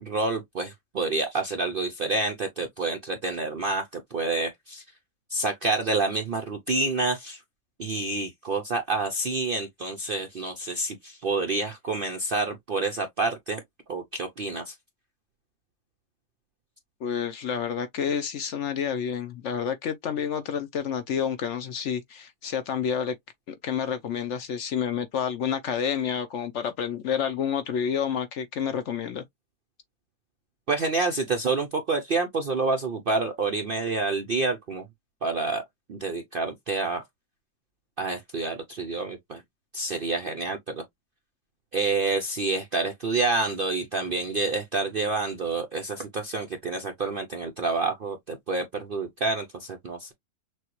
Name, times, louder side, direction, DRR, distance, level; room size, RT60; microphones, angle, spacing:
voice 1, 0.0-4.8 5.3-7.4 7.8-13.6 13.9-14.8 30.7-34.8 35.2-35.6 35.9-37.0 38.0-39.4 39.7-40.8 41.7-50.1, right 3 dB, 60° right, 0.5 m, -28 dB
voice 2, 17.0-23.2 23.5-29.2, left 7 dB, 60° left, 0.8 m, -29 dB
6.3 x 2.2 x 3.0 m
omnidirectional pair, 1.6 m